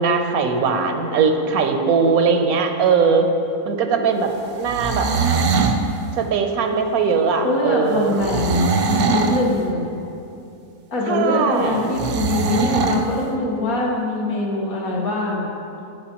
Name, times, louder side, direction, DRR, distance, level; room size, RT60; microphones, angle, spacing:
voice 1, 0.0-3.3 3.6-5.1 6.2-8.2 11.1-11.9, right 5 dB, 85° right, 5 dB, 1.2 m, -20 dB
sound 1, 4.6-5.8 8.2-9.4 11.9-13.0, right 4 dB, 65° right, 0.6 m, -21 dB
voice 2, 7.3-9.8 10.9-15.5, left 2 dB, 80° left, -3 dB, 1.8 m, -23 dB
15.5 x 5.5 x 2.9 m, 2.7 s
omnidirectional pair, 1.5 m